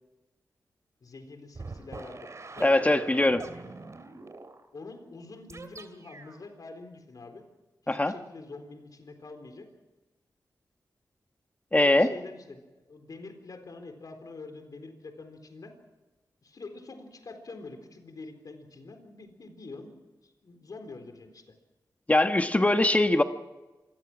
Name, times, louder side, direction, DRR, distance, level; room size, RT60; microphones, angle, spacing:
voice 1, 1.0-3.1 3.5-3.7 4.7-7.4 7.8-9.7 11.7-15.7 16.4-19.9 20.2-21.4, left 3 dB, 60° left, 6 dB, 4.0 m, -45 dB
sound 1, 1.5-4.6 5.5-6.4, right 3 dB, 45° right, 2.5 m, -44 dB
voice 2, 2.6-3.4 7.9-8.1 11.7-12.1 22.1-23.2, left 1 dB, 20° left, 7 dB, 1.2 m, -22 dB
27.0 x 20.5 x 6.2 m, 1.1 s
wide cardioid pair, 95°, 7 cm